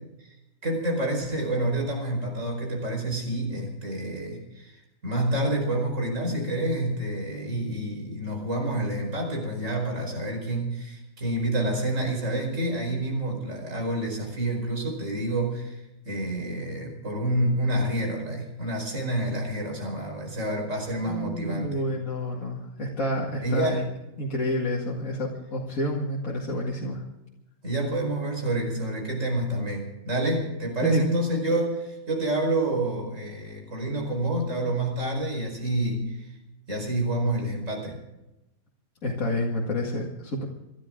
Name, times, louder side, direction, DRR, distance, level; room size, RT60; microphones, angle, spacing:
voice 1, 0.6-15.8 16.0-21.8 23.4-23.9 27.6-36.2 36.7-38.0, right 1 dB, 60° right, 1 dB, 5.2 m, -28 dB
voice 2, 21.0-23.8 24.2-27.0 30.8-31.1 39.0-40.4, equal, 70° left, -3 dB, 2.5 m, -29 dB
29.5 x 12.5 x 3.8 m, 0.95 s
omnidirectional pair, 1.5 m